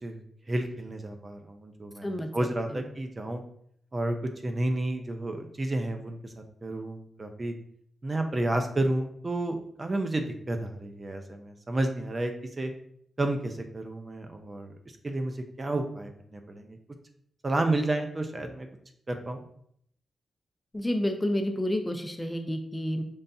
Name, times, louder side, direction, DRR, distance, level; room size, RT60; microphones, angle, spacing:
voice 1, 0.5-3.4 3.9-4.2 4.4-6.3 6.6-7.5 8.0-12.7 13.2-14.7 15.0-16.8 17.4-18.7 19.1-19.4, right 2 dB, 35° right, 5 dB, 0.7 m, -31 dB
voice 2, 20.7-23.0, left 1 dB, 20° left, 5 dB, 0.6 m, -29 dB
5.5 x 3.3 x 2.7 m, 0.66 s
cardioid pair, 70°, 0 cm